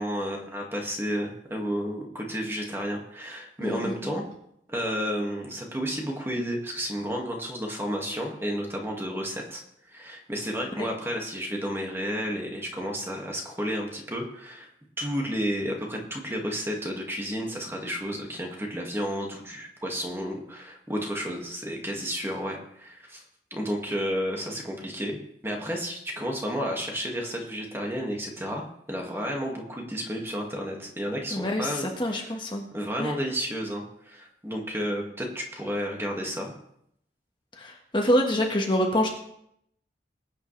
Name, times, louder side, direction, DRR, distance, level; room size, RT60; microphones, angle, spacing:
voice 1, 0.0-4.3 4.7-9.6 9.9-14.7 15.0-23.2 23.5-25.2 25.4-28.6 28.9-32.4 32.7-36.5, equal, 15° right, 0 dB, 2.0 m, -31 dB
voice 2, 3.6-4.2 10.8-10.9 31.3-32.6 33.0-33.1 37.6-39.1, equal, 25° left, 1 dB, 1.5 m, -26 dB
21.0 x 9.3 x 3.3 m, 0.74 s
head